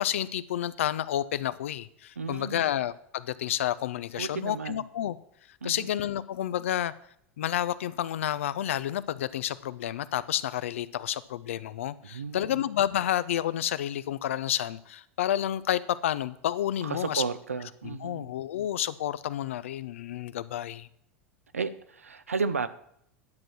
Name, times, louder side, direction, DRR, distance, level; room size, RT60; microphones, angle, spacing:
voice 1, 0.0-5.2 5.6-6.9 7.4-17.2 17.8-20.9, left 11 dB, 70° left, 0.6 m, -30 dB
voice 2, 2.2-2.7 4.2-4.8 5.6-5.9 12.0-12.7 16.8-18.3 21.5-22.7, right 5 dB, 85° right, 0.7 m, -33 dB
11.0 x 7.6 x 6.0 m
figure-of-eight pair, 85°, 7 cm